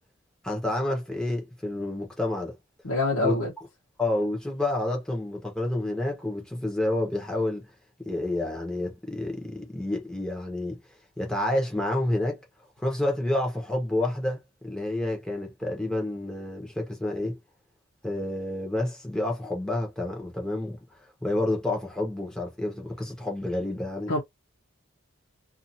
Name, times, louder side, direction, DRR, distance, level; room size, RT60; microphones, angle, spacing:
voice 1, 0.4-2.5 3.2-3.4 4.0-7.7 8.1-10.8 11.2-12.4 12.8-17.4 18.0-20.8 21.2-24.1, left 1 dB, 5° left, 1.0 m, -29 dB
voice 2, 2.8-3.5 24.1-24.2, left 2 dB, 75° left, 0.9 m, -25 dB
2.6 x 2.6 x 2.7 m
head